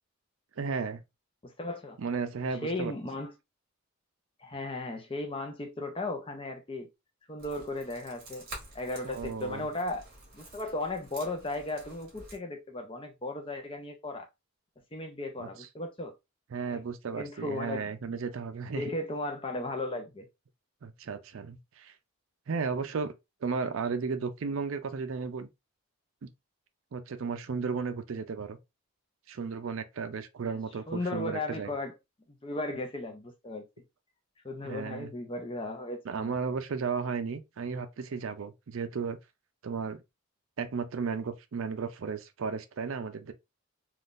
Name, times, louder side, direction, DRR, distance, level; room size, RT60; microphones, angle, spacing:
voice 1, 0.6-1.0 2.0-2.9 9.0-9.7 15.4-15.7 16.5-18.9 20.8-21.9 22.5-23.1 23.4-25.5 26.2-26.3 26.9-28.6 29.3-31.7 34.6-35.1 36.0-39.2 39.6-40.0 40.6-43.3, right 5 dB, 65° right, 0.4 m, -34 dB
voice 2, 1.4-2.0 2.6-3.3 4.4-6.9 7.3-8.4 8.7-10.0 10.3-14.3 14.9-16.1 16.7-16.8 17.2-17.9 18.7-20.3 30.9-31.9 32.4-33.6 34.4-36.3, left 2 dB, 25° left, 0.5 m, -36 dB
sound 1, 7.4-12.4, right 2 dB, 40° right, 1.4 m, -49 dB
3.6 x 2.3 x 2.5 m
head